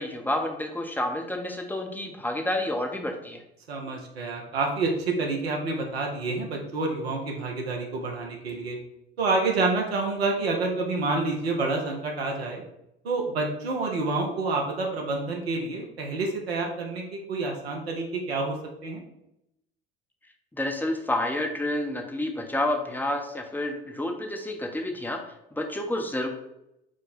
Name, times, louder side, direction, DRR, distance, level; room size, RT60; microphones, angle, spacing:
voice 1, 0.0-3.4 20.5-25.2 25.5-26.3, left 1 dB, 5° left, 3 dB, 0.6 m, -29 dB
voice 2, 3.7-8.8 9.2-12.6 13.0-18.6 18.8-19.0, right 3 dB, 80° right, 1 dB, 0.8 m, -28 dB
4.9 x 2.2 x 4.0 m, 0.85 s
figure-of-eight pair, 65°, 31 cm